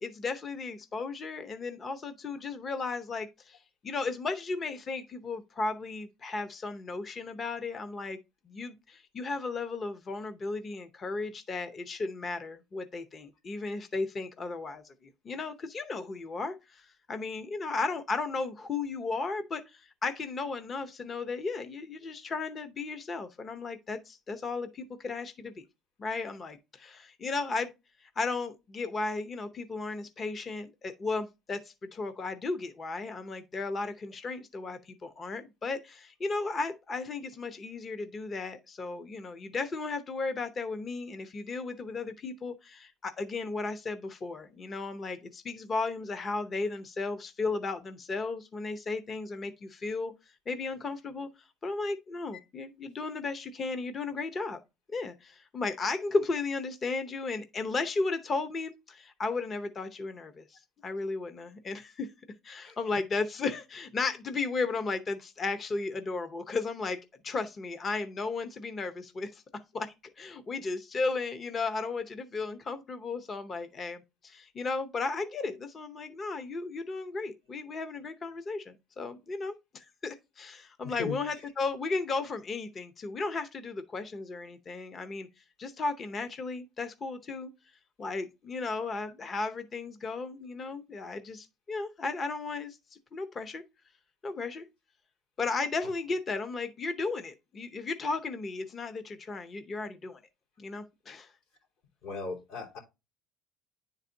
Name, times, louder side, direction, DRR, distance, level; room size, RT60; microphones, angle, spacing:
voice 1, 0.0-3.6 3.8-8.2 8.5-14.8 15.2-25.5 26.0-27.7 28.2-50.1 50.5-51.3 51.6-54.6 54.9-60.4 60.8-62.1 62.4-67.0 67.2-85.3 85.6-87.5 88.0-92.8 93.1-93.6 94.2-94.7 95.4-100.2 100.6-101.3, left 3 dB, 30° left, 0.7 m, -35 dB
voice 2, 80.8-81.2 102.0-102.8, left 4 dB, 75° left, 2.9 m, -37 dB
9.9 x 4.0 x 2.6 m
cardioid pair, 135°, 0 cm